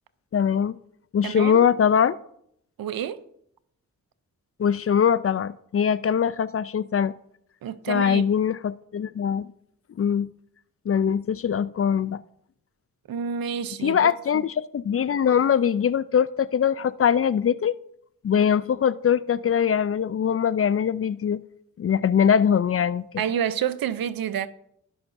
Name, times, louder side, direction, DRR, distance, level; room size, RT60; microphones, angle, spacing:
voice 1, 0.3-0.7 1.1-2.2 4.6-7.1 7.9-9.5 10.0-10.3 10.9-12.2 13.8-17.7 18.2-21.4 21.8-23.1, left 8 dB, 40° left, 0.4 m, -22 dB
voice 2, 1.2-1.6 2.8-3.2 7.6-8.3 13.1-14.0 14.3-14.4 23.2-24.5, right 8 dB, 75° right, 0.7 m, -28 dB
17.0 x 5.8 x 2.6 m
cardioid pair, 45°, 36 cm